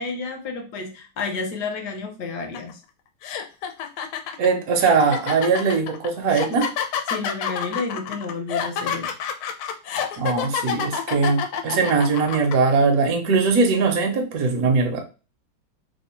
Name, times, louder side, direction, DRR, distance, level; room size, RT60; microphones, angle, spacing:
voice 1, 0.0-2.8 7.1-9.1, left 4 dB, 60° left, 4 dB, 1.2 m, -30 dB
sound 1, 2.5-2.7 3.2-12.5, left 8 dB, 80° left, 1.4 m, -28 dB
voice 2, 4.4-6.7 10.2-15.0, right 4 dB, 60° right, 2 dB, 1.0 m, -20 dB
3.4 x 2.2 x 4.2 m, 0.33 s
omnidirectional pair, 2.3 m